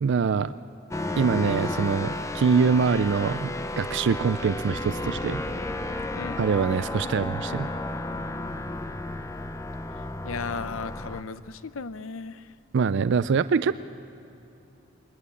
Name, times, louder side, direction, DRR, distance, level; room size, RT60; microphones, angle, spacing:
voice 1, 0.0-0.5 1.2-5.4 6.4-7.7 12.7-13.7, right 5 dB, 60° right, 13 dB, 0.4 m, -24 dB
sound 1, 0.9-11.2, left 1 dB, 15° left, 0.6 m, -32 dB
voice 2, 10.2-12.5 13.1-13.3, left 4 dB, 80° left, 14 dB, 0.7 m, -36 dB
21.5 x 19.5 x 8.3 m, 2.9 s
head